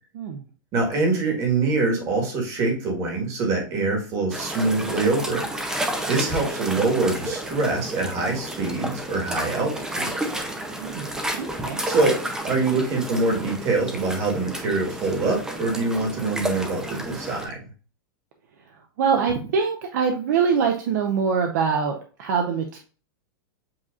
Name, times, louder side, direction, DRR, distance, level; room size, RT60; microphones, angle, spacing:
voice 1, 0.7-5.7 6.1-10.1 11.8-17.6, right 3 dB, 25° right, 1 dB, 1.5 m, -24 dB
sound 1, 4.3-17.5, right 1 dB, 5° right, 0.6 m, -31 dB
voice 2, 10.8-11.8 18.7-22.8, right 6 dB, 55° right, 3 dB, 0.7 m, -24 dB
7.5 x 2.8 x 2.4 m, 0.39 s
supercardioid pair, 165°, 12 cm